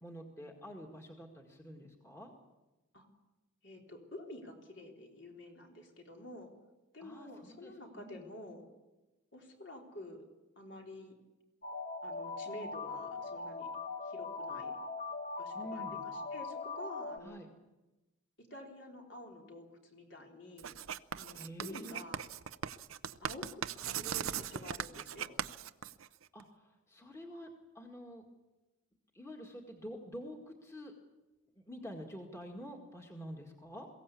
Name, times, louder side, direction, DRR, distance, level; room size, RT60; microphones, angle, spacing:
voice 1, 0.0-2.3 7.0-8.3 15.5-16.0 17.2-17.5 21.3-22.0 23.8-24.0 26.3-27.5 27.7-28.2 29.1-30.9 31.6-33.9, equal, 15° left, 1 dB, 2.0 m, -48 dB
voice 2, 3.6-6.5 6.9-8.6 9.3-10.3 10.6-11.1 12.0-13.7 14.0-14.7 15.4-17.4 18.5-20.7 21.2-22.2 23.2-25.4, left 1 dB, 60° left, 1 dB, 3.9 m, -49 dB
sound 1, 11.6-17.2, left 4 dB, 40° left, 1.3 m, -41 dB
Writing, 20.6-26.4, right 8 dB, 90° right, 0.7 m, -39 dB
22.5 x 16.5 x 8.4 m, 1.1 s
head